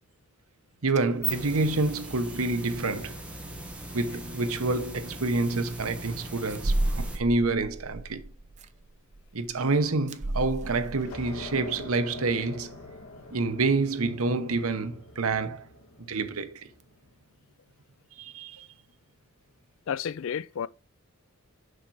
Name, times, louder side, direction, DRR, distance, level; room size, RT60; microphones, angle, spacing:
voice 1, 0.8-3.2 3.9-8.2 9.3-12.8 13.3-15.7 16.0-16.7 18.2-18.7, right 3 dB, 80° right, 0.9 m, -28 dB
sound 1, 0.9-1.6 2.1-2.3 2.7-2.8 3.5-3.8 4.1-4.3 4.6-4.7 6.5-12.4 12.7-12.8 13.1-13.2 16.8-16.9, right 1 dB, 35° right, 0.6 m, -34 dB
sound 2, 1.0-7.2, right 2 dB, 5° right, 1.6 m, -38 dB
sound 3, 10.6-17.0, left 2 dB, 90° left, 1.7 m, -45 dB
voice 2, 19.9-20.7, left 7 dB, 65° left, 0.4 m, -31 dB
6.6 x 5.7 x 4.8 m
head